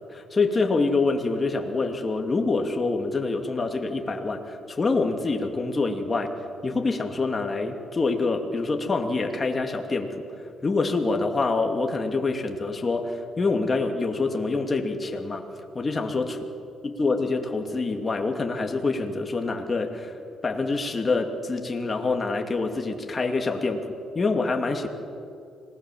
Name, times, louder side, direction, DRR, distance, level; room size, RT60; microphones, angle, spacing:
voice 1, 0.0-6.3 6.6-10.3 10.6-15.4 15.7-16.3 16.8-20.1 20.4-24.9, left 3 dB, 30° left, 4 dB, 2.7 m, -26 dB
26.0 x 20.0 x 7.5 m, 2.5 s
cardioid pair, 90°, 0 cm